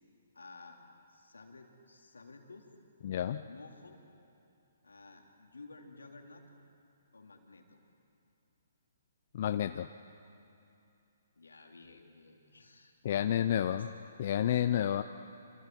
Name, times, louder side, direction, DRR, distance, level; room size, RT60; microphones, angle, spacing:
voice 1, 0.3-0.8 1.1-2.7 3.4-4.0 4.8-6.4 7.1-7.8 11.4-12.9 13.4-13.9 14.8-15.0, left 3 dB, 85° left, 2 dB, 3.0 m, -53 dB
voice 2, 3.0-3.4 9.3-9.9 13.0-13.9 14.2-15.0, left 10 dB, 50° left, 9 dB, 0.6 m, -30 dB
28.5 x 26.0 x 4.6 m, 2.7 s
hypercardioid pair, 135°, 0 cm